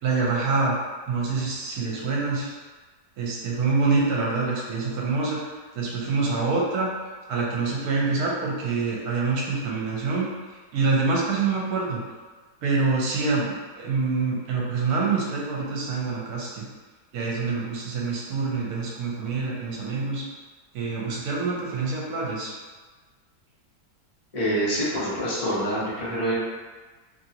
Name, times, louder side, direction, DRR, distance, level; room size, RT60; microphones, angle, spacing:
voice 1, 0.0-0.8 1.1-2.5 3.2-5.4 5.7-6.9 7.3-10.3 10.7-12.0 12.6-16.7 17.1-20.2 20.7-22.5, right 4 dB, 70° right, -4 dB, 1.2 m, -26 dB
voice 2, 24.3-26.4, equal, 75° left, -8 dB, 0.3 m, -26 dB
2.9 x 2.7 x 2.8 m, 1.4 s
omnidirectional pair, 1.7 m